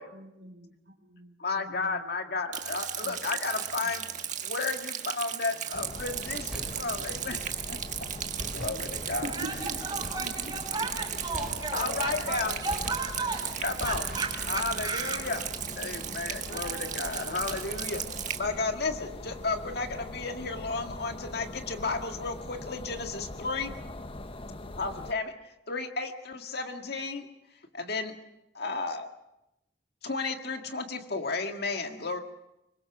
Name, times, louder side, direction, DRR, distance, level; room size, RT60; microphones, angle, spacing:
voice 1, 0.0-2.2 3.0-3.4 3.8-3.9 9.0-10.9, right 1 dB, 75° right, 5 dB, 3.5 m, -44 dB
voice 2, 1.4-4.1 4.4-7.8 8.4-9.3 11.7-12.5 13.6-14.0 14.5-15.4 15.8-18.0 18.4-23.7 24.8-25.3 25.7-27.3 27.7-28.1 28.5-29.1 30.0-32.2, left 3 dB, 60° left, 5 dB, 1.9 m, -33 dB
Rain, 2.5-18.4, right 9 dB, 45° right, 1.5 m, -36 dB
sound 1, 5.7-25.1, left 2 dB, 30° left, 0.9 m, -42 dB
sound 2, 6.5-7.2 8.4-9.3 10.0-10.6 11.3-12.1 12.7-13.4 13.8-14.6, equal, 5° right, 4.3 m, -42 dB
voice 3, 9.3-15.2 16.4-17.4, right 3 dB, 20° right, -1 dB, 7.9 m, -35 dB
24.5 x 21.5 x 6.2 m, 0.87 s
head